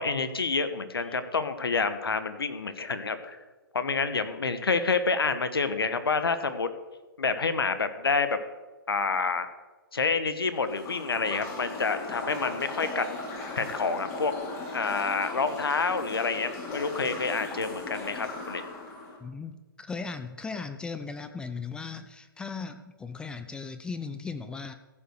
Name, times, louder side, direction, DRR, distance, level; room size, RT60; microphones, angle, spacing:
voice 1, 0.0-3.4 3.7-6.7 7.2-8.4 8.9-9.5 9.9-13.1 13.6-14.3 14.7-18.6, left 4 dB, 85° left, 11 dB, 1.1 m, -28 dB
sound 1, 10.5-19.2, left 2 dB, 25° left, 2.5 m, -38 dB
voice 2, 19.2-24.7, left 4 dB, 5° left, 10 dB, 0.4 m, -37 dB
15.0 x 5.4 x 6.4 m, 1.2 s
hypercardioid pair, 135°, 12 cm